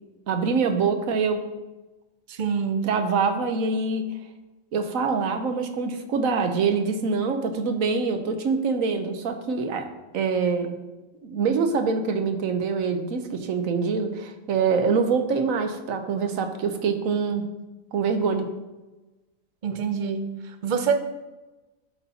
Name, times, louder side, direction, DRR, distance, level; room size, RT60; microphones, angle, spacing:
voice 1, 0.3-1.4 2.8-4.0 4.7-9.9 10.1-10.7 11.2-17.4 17.9-18.5, right 5 dB, 85° right, 6 dB, 1.2 m, -25 dB
voice 2, 2.3-2.9 19.6-21.0, right 6 dB, 45° right, 7 dB, 0.7 m, -26 dB
11.5 x 4.2 x 4.1 m, 1.1 s
omnidirectional pair, 1.4 m